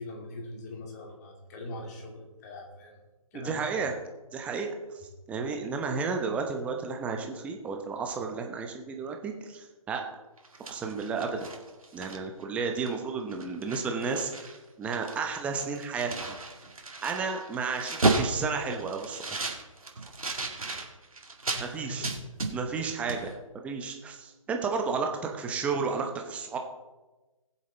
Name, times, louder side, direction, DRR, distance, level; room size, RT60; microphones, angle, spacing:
voice 1, 0.0-2.9 3.3-3.8 18.5-18.8 21.5-22.2 22.7-23.3, left 1 dB, 30° left, 1 dB, 2.6 m, -42 dB
voice 2, 3.3-4.0 4.3-4.7 5.3-10.0 10.7-11.5 11.9-16.4 17.0-19.2 21.6-22.1 22.5-26.6, right 5 dB, 5° right, 3 dB, 0.8 m, -32 dB
sound 1, 10.4-12.4 12.9-13.0 13.3-14.6 14.8-21.7 22.0-22.8 23.1-23.2, right 2 dB, 70° right, 2.1 m, -33 dB
20.5 x 7.3 x 4.0 m, 1.1 s
figure-of-eight pair, 145°, 18 cm